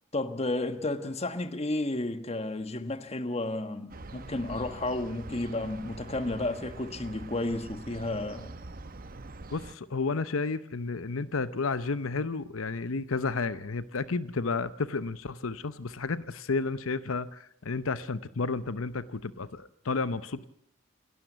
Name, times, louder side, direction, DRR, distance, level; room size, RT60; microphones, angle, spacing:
voice 1, 0.1-8.5, left 2 dB, 30° left, 1.4 m, -32 dB
sound 1, 3.9-9.7, right 2 dB, 45° right, 0.9 m, -44 dB
voice 2, 9.5-20.5, left 4 dB, 85° left, 0.8 m, -32 dB
27.5 x 12.5 x 8.0 m
head